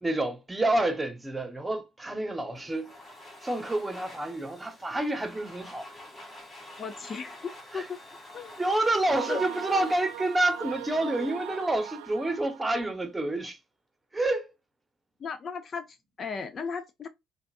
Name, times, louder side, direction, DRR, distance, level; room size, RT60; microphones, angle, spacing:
voice 1, 0.0-2.9 3.4-5.9 7.7-7.9 8.6-13.6 14.1-14.5, right 2 dB, 15° right, 1.0 m, -28 dB
Domestic sounds home sounds, 2.6-11.5, left 1 dB, 25° left, 2.3 m, -48 dB
voice 2, 6.8-7.4 7.7-8.0 8.3-8.6 9.3-9.4 15.2-17.1, left 5 dB, 40° left, 0.5 m, -36 dB
sound 1, 9.0-12.9, right 15 dB, 75° right, 0.3 m, -40 dB
5.4 x 2.4 x 2.4 m
hypercardioid pair, 55°, 0 cm